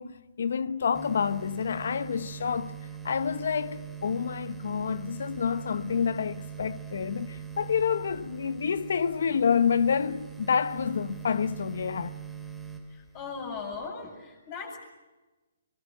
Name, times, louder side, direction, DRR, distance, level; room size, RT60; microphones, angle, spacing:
voice 1, 0.0-2.7 3.0-12.1, left 6 dB, 65° left, 0.9 m, -28 dB
sound 1, 0.9-13.9, right 9 dB, ahead, 2.5 m, -42 dB
voice 2, 13.1-14.8, left 5 dB, 35° left, 7.6 m, -38 dB
25.0 x 22.5 x 8.8 m
hypercardioid pair, 140°, 0 cm